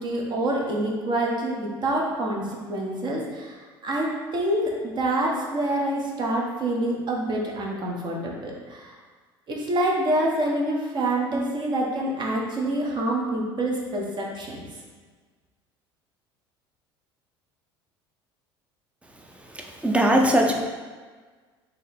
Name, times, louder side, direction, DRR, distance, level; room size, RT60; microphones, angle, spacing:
voice 1, 0.0-8.9 9.5-14.6, right 1 dB, 35° right, -2 dB, 0.9 m, -26 dB
voice 2, 19.8-20.5, right 1 dB, 10° right, 2 dB, 0.6 m, -19 dB
3.9 x 2.6 x 4.2 m, 1.5 s
figure-of-eight pair, 65°, 13 cm